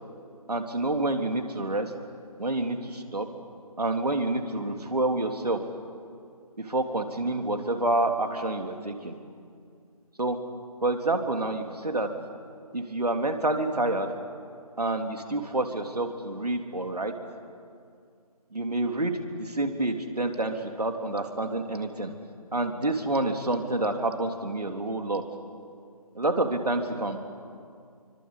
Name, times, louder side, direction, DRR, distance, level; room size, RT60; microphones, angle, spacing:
voice 1, 0.5-1.9 2.4-3.3 3.8-5.6 6.6-9.1 10.2-10.4 10.8-12.1 12.7-14.1 14.8-17.1 18.5-22.1 22.5-25.2 26.1-27.2, right 2 dB, 85° right, 5 dB, 3.4 m, -28 dB
28.0 x 24.0 x 8.4 m, 2.3 s
figure-of-eight pair, 150°, 20 cm